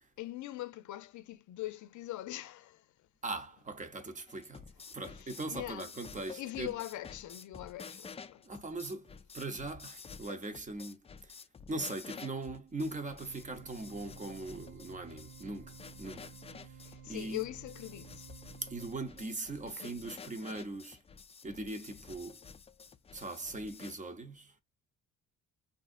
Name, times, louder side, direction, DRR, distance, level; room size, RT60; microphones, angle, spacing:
voice 1, 0.2-2.8 5.1-5.9 6.4-8.4 16.8-18.3 19.7-20.2, left 16 dB, 75° left, 0.5 m, -42 dB
voice 2, 3.2-6.7 8.4-11.4 11.7-16.3 16.6-16.8 17.1-17.4 18.6-21.0 21.4-22.4 23.1-24.6, right 2 dB, 25° right, 0.8 m, -40 dB
sound 1, 4.3-24.0, left 5 dB, 20° left, 0.4 m, -51 dB
sound 2, 13.2-19.0, right 6 dB, 75° right, 0.9 m, -53 dB
3.6 x 2.7 x 2.4 m
cardioid pair, 90°, 30 cm